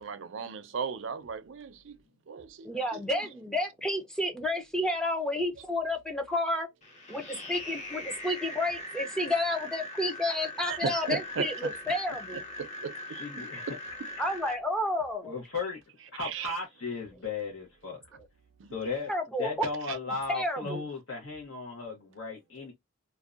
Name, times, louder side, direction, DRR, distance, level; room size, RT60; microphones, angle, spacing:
voice 1, 0.0-2.0 2.3-3.2 10.7-11.7 12.6-12.9 16.2-16.5 18.6-18.7 19.9-20.0 20.7-20.8, right 6 dB, 65° right, 0.5 m, -36 dB
voice 2, 2.6-6.7 7.1-12.4 14.2-15.4 19.1-19.5 20.3-20.8, left 1 dB, 5° left, 0.5 m, -31 dB
sound 1, 6.8-14.5, left 1 dB, 35° left, 0.8 m, -41 dB
voice 3, 13.1-13.7 15.2-15.8 16.1-18.0 18.7-19.1 19.4-22.7, left 4 dB, 65° left, 0.8 m, -36 dB
2.5 x 2.1 x 2.3 m
head